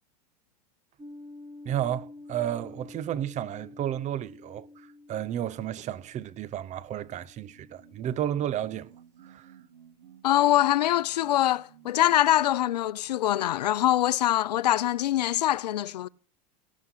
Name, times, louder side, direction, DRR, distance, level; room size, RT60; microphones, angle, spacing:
sound 1, 1.0-8.8, left 2 dB, 20° right, 2.0 m, -49 dB
voice 1, 1.6-8.9 9.2-9.5, right 11 dB, 35° right, 0.9 m, -32 dB
sound 2, 7.5-12.6, right 9 dB, 85° right, 3.5 m, -55 dB
voice 2, 10.2-16.1, left 13 dB, 90° left, 0.6 m, -24 dB
16.5 x 11.0 x 5.6 m
hypercardioid pair, 110°, 20 cm